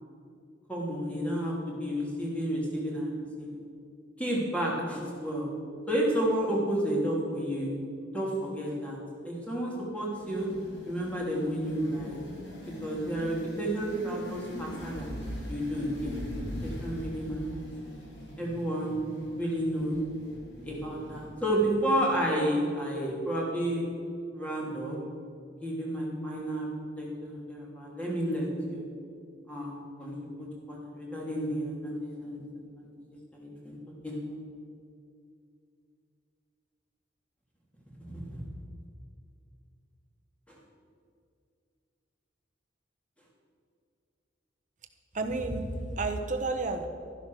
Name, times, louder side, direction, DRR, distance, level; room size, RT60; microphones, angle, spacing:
voice 1, 0.7-3.6 4.2-5.5 5.9-7.7 8.1-9.0 9.2-10.5 10.9-12.2 12.8-15.1 15.5-17.6 18.4-19.0 19.4-20.0 20.6-23.8 24.3-25.0 25.6-28.8 29.5-32.4 32.8-32.9 33.3-33.8 34.0-34.4 38.1-38.4 40.5-40.6, right 1 dB, 5° left, -3 dB, 2.9 m, -31 dB
sound 1, 10.1-21.9, equal, 65° left, 3.7 m, -42 dB
voice 2, 45.1-46.9, right 3 dB, 40° right, 6 dB, 1.1 m, -31 dB
12.5 x 11.0 x 6.3 m, 2.4 s
head